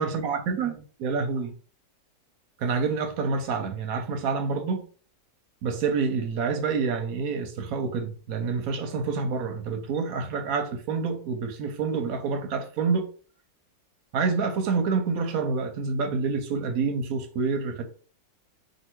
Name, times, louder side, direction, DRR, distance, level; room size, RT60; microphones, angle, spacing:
voice 1, 0.0-1.5 2.6-4.9 5.6-13.1 14.1-17.8, right 5 dB, 60° right, 1.0 m, -27 dB
3.8 x 2.5 x 4.5 m
omnidirectional pair, 1.9 m